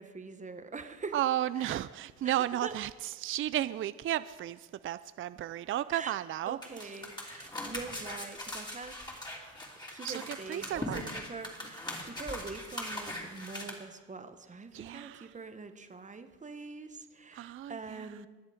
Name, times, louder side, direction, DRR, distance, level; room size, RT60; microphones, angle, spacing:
voice 1, 0.0-1.2 1.6-1.8 2.2-2.3 2.6-2.7 5.9-6.1 6.5-9.3 9.9-18.3, right 4 dB, 25° right, 8 dB, 1.1 m, -44 dB
voice 2, 1.1-6.6 10.0-11.1 14.7-15.3 17.3-18.2, right 12 dB, 45° right, 15 dB, 0.4 m, -34 dB
sound 1, 6.6-13.7, left 1 dB, 15° left, 3.0 m, -40 dB
21.0 x 7.4 x 4.9 m, 1.4 s
cardioid pair, 90°, 30 cm